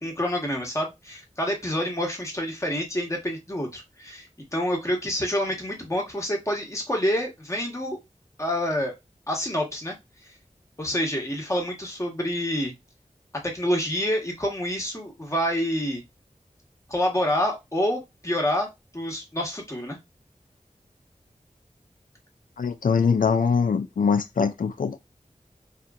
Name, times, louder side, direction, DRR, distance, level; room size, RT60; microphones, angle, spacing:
voice 1, 0.0-4.3 4.5-8.0 8.4-8.9 9.3-10.0 10.8-12.7 13.4-16.0 16.9-20.0, equal, 20° left, 1.0 m, -27 dB
voice 2, 22.6-25.0, left 5 dB, 85° left, 0.4 m, -23 dB
2.8 x 2.5 x 2.3 m
wide cardioid pair, 60°, 14 cm